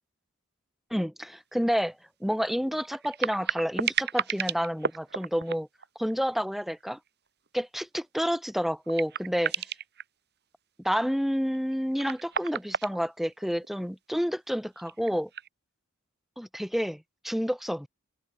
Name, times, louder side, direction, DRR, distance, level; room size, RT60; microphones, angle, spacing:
voice 1, 0.9-5.7 6.0-7.0 7.5-9.7 10.8-15.3 16.4-17.9, equal, ahead, 5.6 m, -29 dB
sound 1, 1.2-1.3 1.6-1.7 2.8-6.4 6.7-7.1 7.5-7.6 8.4-8.5 8.8-10.0 11.5-13.7 14.8-15.5, right 7 dB, 50° right, 2.7 m, -33 dB
head